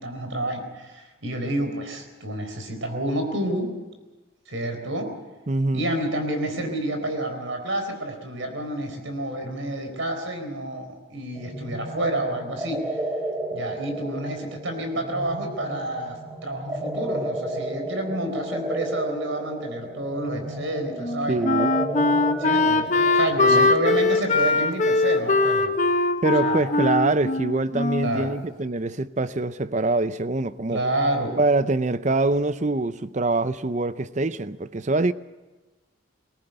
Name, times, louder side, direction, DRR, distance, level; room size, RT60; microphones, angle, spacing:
voice 1, 0.0-3.8 4.5-5.1 5.7-12.9 13.5-21.4 22.4-25.8 26.4-26.6 28.0-28.3 30.7-31.4, right 1 dB, 75° right, 4.3 m, -29 dB
voice 2, 5.5-5.9 21.3-21.7 23.5-23.7 26.2-30.8 31.4-35.1, right 2 dB, 35° right, 0.6 m, -24 dB
sound 1, 11.4-24.9, right 1 dB, 10° right, 1.0 m, -33 dB
Wind instrument woodwind instrument, 21.0-28.3, left 3 dB, 35° left, 1.1 m, -21 dB
20.5 x 18.0 x 8.0 m
head